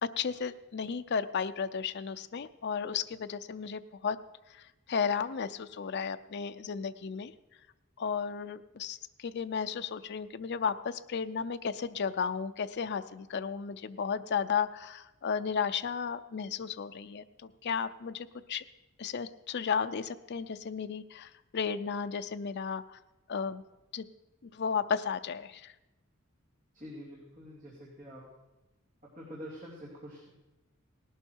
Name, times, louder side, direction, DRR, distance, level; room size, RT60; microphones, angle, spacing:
voice 1, 0.0-4.2 4.5-7.3 8.0-18.6 19.0-23.0 23.3-23.6 23.9-24.1 24.5-25.7, left 6 dB, 55° left, 10 dB, 0.5 m, -34 dB
voice 2, 26.7-28.2 29.1-30.3, equal, 40° right, -5 dB, 2.9 m, -46 dB
18.0 x 12.0 x 4.6 m, 1.0 s
head